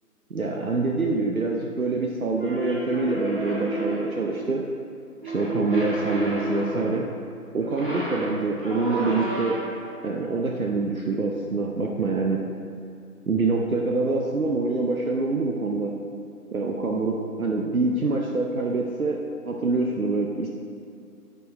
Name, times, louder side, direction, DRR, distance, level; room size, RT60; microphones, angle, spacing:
voice 1, 0.3-4.6 5.2-7.1 7.5-9.6 10.0-12.4 13.3-15.9 16.5-19.2 19.4-20.5, right 3 dB, 65° right, 0 dB, 0.7 m, -25 dB
sound 1, 2.4-4.2 5.2-7.0 7.6-9.9, equal, 35° right, 1.2 m, -31 dB
9.8 x 4.5 x 4.2 m, 2.6 s
figure-of-eight pair, 180°, 47 cm